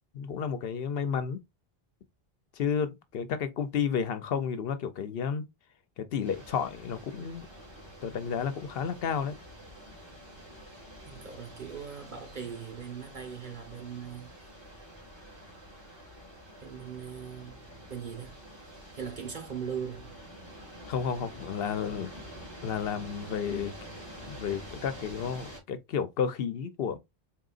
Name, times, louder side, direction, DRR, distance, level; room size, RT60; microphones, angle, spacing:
voice 1, 0.1-1.4 2.6-5.4 6.0-7.5 8.0-9.4 20.9-22.1 22.6-23.8 24.3-27.0, left 7 dB, 70° left, 0.8 m, -31 dB
sound 1, 6.2-25.6, equal, 25° right, 2.0 m, -47 dB
voice 2, 11.0-14.3 16.6-18.4 18.9-20.1, right 7 dB, 50° right, 1.3 m, -40 dB
4.2 x 3.8 x 2.4 m
omnidirectional pair, 1.0 m